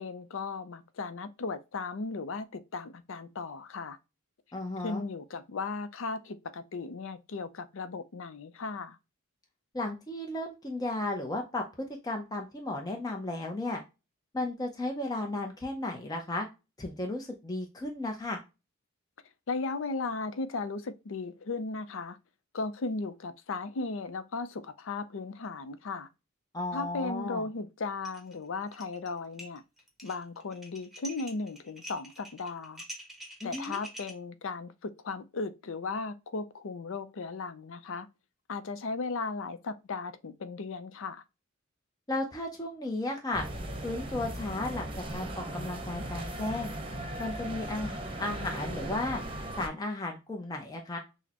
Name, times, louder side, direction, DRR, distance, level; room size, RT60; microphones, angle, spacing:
voice 1, 0.0-4.0 4.8-9.0 19.5-22.2 22.5-26.1 26.7-29.6 30.0-32.8 33.4-38.1 38.5-41.2, left 3 dB, 65° left, 0.5 m, -36 dB
voice 2, 4.5-5.0 9.7-13.8 14.3-16.5 16.8-18.4 26.5-27.4 33.4-33.8 42.1-43.5 43.8-46.7 47.2-49.2 49.6-51.0, left 2 dB, 20° left, 0.6 m, -34 dB
sound 1, 28.0-28.3 28.6-29.1 29.4-34.1, equal, ahead, 1.0 m, -45 dB
sound 2, 43.3-49.7, right 1 dB, 25° right, 0.8 m, -38 dB
6.2 x 2.1 x 2.8 m
head